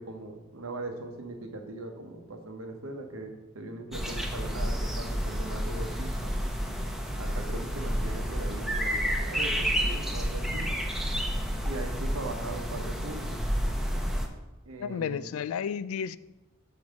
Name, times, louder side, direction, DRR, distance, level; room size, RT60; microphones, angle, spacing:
voice 1, 0.0-6.3 7.2-10.7 11.6-13.4 14.7-15.3, right 2 dB, 85° right, 1.0 m, -40 dB
sound 1, 3.9-14.3, equal, ahead, 0.7 m, -30 dB
voice 2, 14.8-16.2, left 7 dB, 90° left, 0.3 m, -32 dB
5.4 x 4.7 x 6.2 m
head